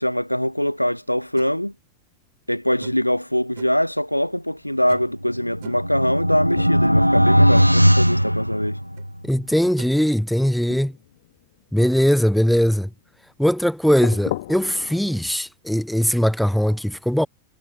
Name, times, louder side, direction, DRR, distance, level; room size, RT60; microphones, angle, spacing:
voice 1, 0.0-1.7 2.5-8.8, equal, 90° left, 1.0 m, -23 dB
sound 1, 1.4-1.5 2.8-3.2 3.6-3.8 4.9-5.2 5.6-6.0 6.8-7.0 7.3-7.8 9.0-9.1 9.8-9.9, right 16 dB, 55° right, 3.0 m, -42 dB
sound 2, 5.2-9.2, equal, 90° right, 0.3 m, -18 dB
voice 2, 9.2-10.9 11.7-12.9 13.4-17.3, equal, ahead, 0.4 m, -20 dB
sound 3, 10.7-13.2 14.0-15.2, left 15 dB, 55° left, 1.9 m, -37 dB
figure-of-eight pair, 90°, 0 cm